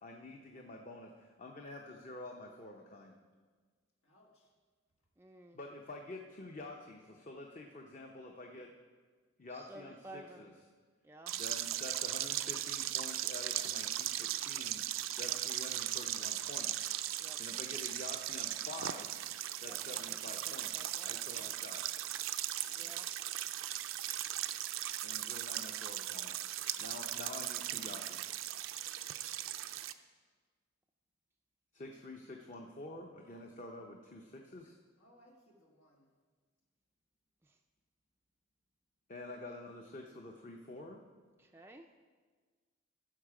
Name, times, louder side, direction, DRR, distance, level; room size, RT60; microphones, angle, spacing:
voice 1, 0.0-3.1 5.5-8.7 9.4-10.6 11.3-16.9 17.4-19.2 19.6-20.7 21.0-21.8 25.0-26.3 26.8-28.3 31.7-34.7 39.1-41.0, left 2 dB, 35° left, 2 dB, 0.7 m, -48 dB
voice 2, 4.0-4.5 14.9-15.0 22.7-23.0 35.0-36.1, equal, 90° left, -1 dB, 1.7 m, -65 dB
voice 3, 5.2-5.6 9.5-10.5 11.0-11.3 15.2-15.4 17.2-17.4 19.7-20.0 20.5-21.5 22.7-23.0 41.5-41.9, right 1 dB, 10° right, 3 dB, 0.3 m, -53 dB
sound 1, 11.3-29.9, right 13 dB, 75° right, 0.4 m, -38 dB
15.0 x 6.5 x 4.8 m, 1.5 s
head